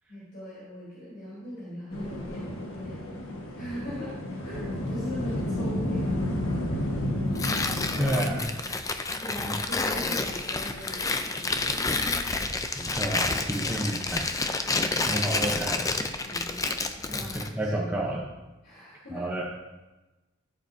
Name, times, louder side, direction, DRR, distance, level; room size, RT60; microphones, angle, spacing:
voice 1, 0.1-3.0 3.6-4.2 4.4-6.3 6.7-7.0 7.9-8.2 9.2-12.3 16.2-18.1 18.6-19.3, equal, 50° left, -9 dB, 3.3 m, -40 dB
sound 1, 1.9-8.4, left 1 dB, 85° left, 1.5 m, -31 dB
Tearing, 7.3-17.5, left 3 dB, 15° left, 0.4 m, -29 dB
voice 2, 8.0-8.5 9.4-9.5 12.8-14.3 15.1-15.8 17.3-18.2 19.1-19.5, right 1 dB, 10° right, -4 dB, 0.8 m, -30 dB
13.5 x 7.5 x 2.7 m, 1.1 s
head